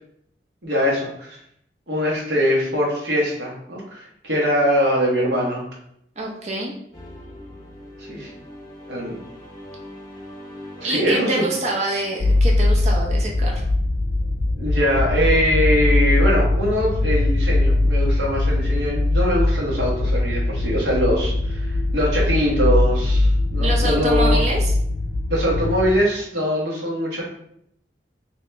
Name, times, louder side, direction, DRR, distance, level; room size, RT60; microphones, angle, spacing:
voice 1, 0.6-1.4 1.9-5.6 8.0-8.3 8.9-9.2 10.8-11.4 14.6-24.4 25.3-27.2, equal, 75° right, -3 dB, 1.1 m, -22 dB
voice 2, 6.2-6.7 10.8-13.6 23.6-24.7, right 2 dB, 40° right, -1 dB, 0.6 m, -26 dB
sound 1, 6.9-13.4, left 1 dB, 20° left, 0.8 m, -41 dB
sound 2, 12.2-25.9, left 2 dB, 50° left, 0.4 m, -20 dB
2.9 x 2.8 x 3.3 m, 0.73 s
head